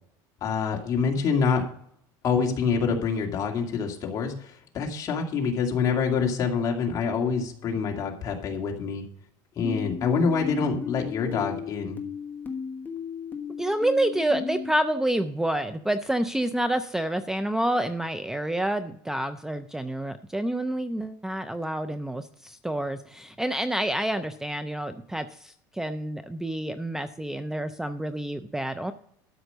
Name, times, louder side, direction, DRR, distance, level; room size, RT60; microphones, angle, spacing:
voice 1, 0.4-1.6 2.2-9.0 9.6-12.0, left 5 dB, 35° left, 1 dB, 2.2 m, -26 dB
sound 1, 9.6-14.7, left 6 dB, 20° left, 1.3 m, -35 dB
voice 2, 13.6-28.9, right 1 dB, 5° right, 10 dB, 0.4 m, -28 dB
12.5 x 5.1 x 6.6 m, 0.67 s
cardioid pair, 150°, 10 cm